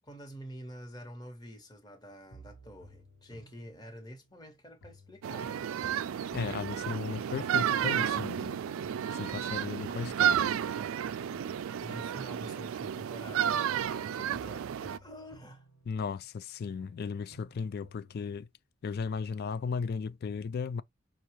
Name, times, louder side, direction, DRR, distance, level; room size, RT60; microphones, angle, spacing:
voice 1, 0.0-5.5 11.8-13.6 13.9-15.7, equal, 20° left, 1.1 m, -47 dB
sound 1, 2.3-4.5 4.8-8.5 8.8-12.5 12.8-16.5 16.8-18.4, right 1 dB, 90° left, 1.4 m, -56 dB
sound 2, 5.2-15.0, right 9 dB, 80° right, 0.3 m, -32 dB
voice 2, 6.3-8.6 9.1-10.5 15.9-18.5 18.8-20.8, left 5 dB, 50° left, 0.3 m, -36 dB
5.4 x 2.4 x 3.0 m
head